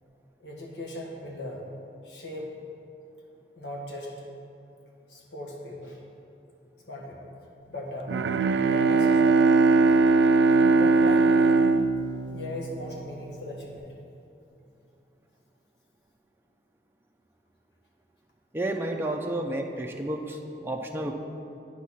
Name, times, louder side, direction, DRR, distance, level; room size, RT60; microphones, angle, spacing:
voice 1, 0.4-1.7 2.0-2.5 3.5-4.3 5.1-6.0 6.9-7.3 7.7-8.1 8.7-9.5 10.8-11.5 12.3-13.9, left 1 dB, 80° left, -2 dB, 1.5 m, -38 dB
Bowed string instrument, 8.1-13.0, right 3 dB, 70° right, 0.3 m, -20 dB
voice 2, 18.5-21.1, right 1 dB, 15° right, 2 dB, 0.5 m, -31 dB
9.3 x 4.2 x 6.2 m, 2.8 s
head